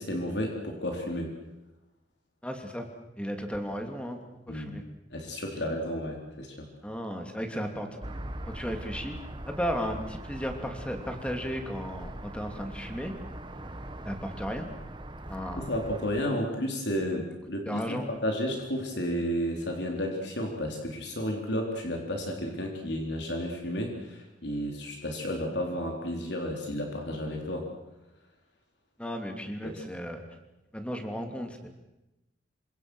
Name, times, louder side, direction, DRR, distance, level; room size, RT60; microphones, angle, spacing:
voice 1, 0.0-1.3 4.5-4.8 5.1-6.7 15.6-27.7 29.6-29.8, equal, 65° left, 1 dB, 4.0 m, -32 dB
voice 2, 2.4-2.8 3.2-4.2 4.5-4.8 6.8-7.9 8.5-9.2 9.5-13.1 14.0-14.7 15.3-15.6 17.7-18.1 29.0-30.2 30.7-31.7, equal, 5° left, 4 dB, 2.9 m, -34 dB
sound 1, 8.0-16.1, right 1 dB, 25° right, 1.5 m, -41 dB
27.5 x 25.5 x 6.4 m, 0.98 s
head